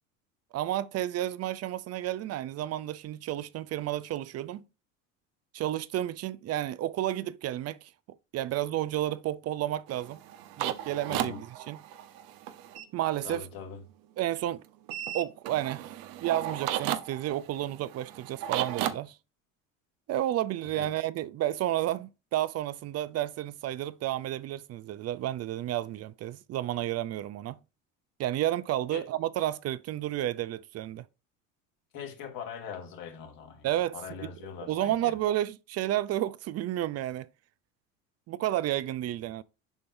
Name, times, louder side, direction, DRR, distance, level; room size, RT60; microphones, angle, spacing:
voice 1, 0.5-4.7 5.5-7.9 8.3-10.2 10.6-11.8 12.9-13.5 14.2-14.6 15.1-15.9 16.2-19.2 20.1-27.6 28.2-31.1 33.6-34.0 34.7-37.3 38.3-39.4, right 13 dB, 40° right, 0.5 m, -31 dB
sound 1, 9.9-12.9 14.9-18.9, right 11 dB, 60° right, 0.8 m, -34 dB
voice 2, 11.1-11.4 13.2-13.8 20.7-20.9 28.9-29.1 31.9-33.7 33.9-35.1, left 7 dB, 60° left, 2.1 m, -41 dB
7.2 x 5.2 x 2.6 m
hypercardioid pair, 85°, 39 cm